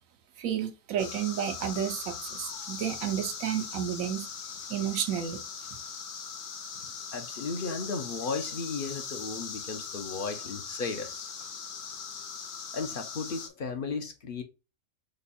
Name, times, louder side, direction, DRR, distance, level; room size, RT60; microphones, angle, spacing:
voice 1, 0.4-4.3 4.7-5.4, right 9 dB, 80° right, 1.1 m, -31 dB
sound 1, 1.0-13.5, left 6 dB, 80° left, 1.2 m, -40 dB
voice 2, 7.1-11.3 12.7-14.4, left 4 dB, 50° left, 0.8 m, -35 dB
5.3 x 2.3 x 4.2 m
omnidirectional pair, 1.4 m